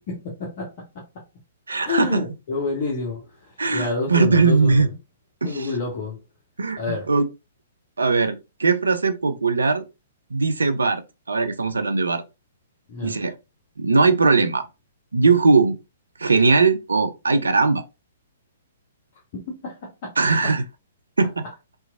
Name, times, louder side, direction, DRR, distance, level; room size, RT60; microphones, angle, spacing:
voice 1, 0.1-0.7 1.8-4.9 5.4-6.2 6.8-7.1 12.9-13.1 19.6-19.7 20.0-20.1, left 3 dB, 40° left, 0.7 m, -28 dB
voice 2, 1.7-2.2 3.6-4.9 5.4-5.7 6.6-6.8 7.1-7.3 8.0-9.8 10.3-11.0 11.3-12.2 13.0-13.3 13.8-14.7 15.1-15.8 16.2-17.8 20.2-20.6 21.2-21.4, right 4 dB, 70° right, 0.3 m, -19 dB
2.9 x 2.2 x 2.3 m
figure-of-eight pair, 115°, 0 cm